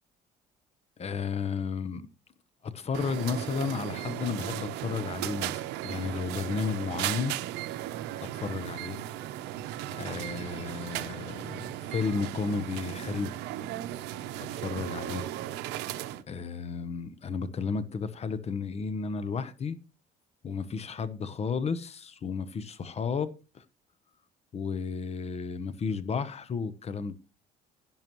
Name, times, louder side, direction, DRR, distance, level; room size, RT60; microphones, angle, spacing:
voice 1, 1.0-2.1 2.6-7.4 8.2-9.0 9.9-13.3 14.3-15.3 16.3-19.8 20.4-23.6 24.5-27.1, left 5 dB, 40° left, 0.9 m, -33 dB
sound 1, 2.9-16.2, right 13 dB, 90° right, 0.8 m, -36 dB
11.0 x 10.5 x 3.1 m
cardioid pair, 110°, 17 cm